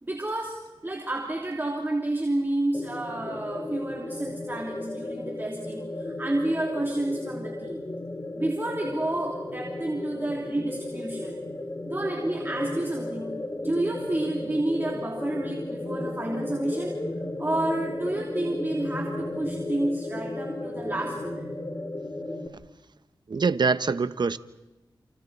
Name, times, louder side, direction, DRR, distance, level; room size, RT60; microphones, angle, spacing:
voice 1, 0.0-5.9 6.2-7.8 8.3-11.4 11.8-17.0 17.4-21.6, right 1 dB, 25° right, 3.1 m, -30 dB
sound 1, 2.7-22.5, left 2 dB, 30° left, 2.8 m, -34 dB
voice 2, 23.3-24.4, right 4 dB, 60° right, 1.0 m, -24 dB
29.5 x 29.0 x 4.2 m
cardioid pair, 65°, 9 cm